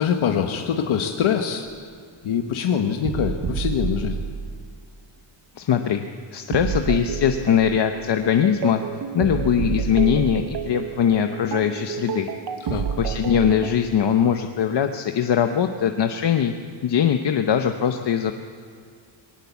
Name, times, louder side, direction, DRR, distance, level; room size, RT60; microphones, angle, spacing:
voice 1, 0.0-1.7 2.2-4.3 12.6-12.9, left 8 dB, 80° left, 4 dB, 1.4 m, -24 dB
sound 1, 3.0-4.8 6.5-13.8, right 7 dB, 55° right, 1.0 m, -29 dB
voice 2, 5.6-6.0 6.3-8.8 9.1-12.3 13.0-16.5 16.8-18.3, left 8 dB, 55° left, 6 dB, 1.0 m, -21 dB
21.0 x 18.5 x 8.3 m, 2.1 s
wide cardioid pair, 170°, 48 cm